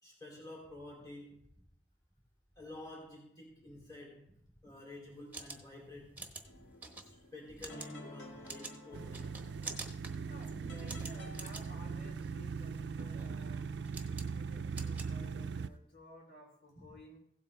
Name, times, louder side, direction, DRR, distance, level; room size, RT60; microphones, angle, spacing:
voice 1, 0.0-1.4 2.5-6.6 7.0-9.4 16.7-16.9, left 1 dB, 20° left, -3 dB, 3.0 m, -51 dB
sound 1, 5.1-15.8, right 3 dB, 10° right, 1.0 m, -49 dB
sound 2, 6.5-11.5, left 1 dB, 80° left, 1.7 m, -53 dB
sound 3, 8.9-15.7, right 5 dB, 60° right, 0.4 m, -40 dB
voice 2, 10.3-13.7 14.1-17.2, left 1 dB, 60° left, -2 dB, 3.8 m, -55 dB
16.0 x 8.1 x 3.3 m, 0.70 s
head